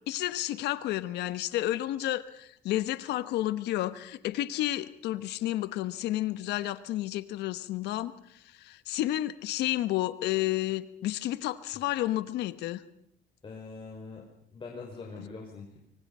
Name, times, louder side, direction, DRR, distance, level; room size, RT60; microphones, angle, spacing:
voice 1, 0.1-12.8, left 15 dB, 80° left, 14 dB, 1.2 m, -31 dB
voice 2, 13.4-14.2 14.5-15.8, left 4 dB, 30° left, 0 dB, 5.5 m, -43 dB
25.0 x 25.0 x 5.6 m, 0.74 s
cardioid pair, 110°, 17 cm